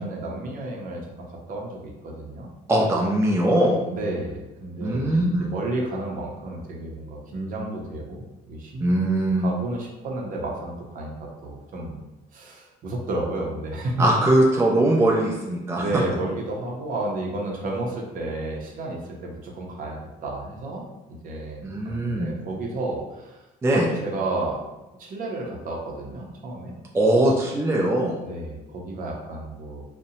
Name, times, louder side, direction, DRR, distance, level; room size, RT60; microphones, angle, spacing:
voice 1, 0.0-2.5 3.9-5.2 5.5-8.9 9.4-12.0 12.3-14.0 15.8-20.8 21.2-23.4 23.7-24.6 25.0-26.7 28.2-29.8, right 2 dB, 55° right, -1 dB, 0.6 m, -32 dB
voice 2, 2.7-3.8 4.8-5.5 8.8-9.5 14.0-15.8 21.6-22.3 23.6-23.9 26.9-28.2, right 1 dB, 15° right, -2 dB, 0.4 m, -21 dB
2.6 x 2.1 x 2.7 m, 1.0 s
cardioid pair, 110°, 17 cm